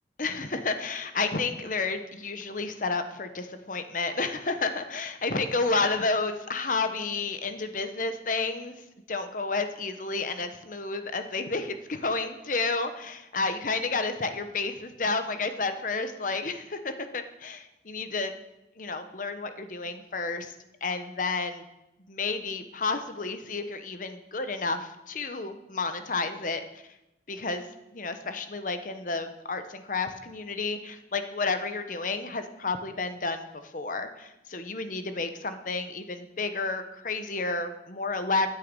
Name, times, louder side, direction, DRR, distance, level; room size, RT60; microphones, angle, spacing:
voice 1, 0.2-8.8 9.1-18.3 18.8-20.5 20.8-21.6 22.1-26.6 27.3-27.6 27.9-33.5 33.7-38.5, left 3 dB, 45° left, 9 dB, 1.0 m, -31 dB
15.0 x 9.4 x 5.4 m, 0.93 s
head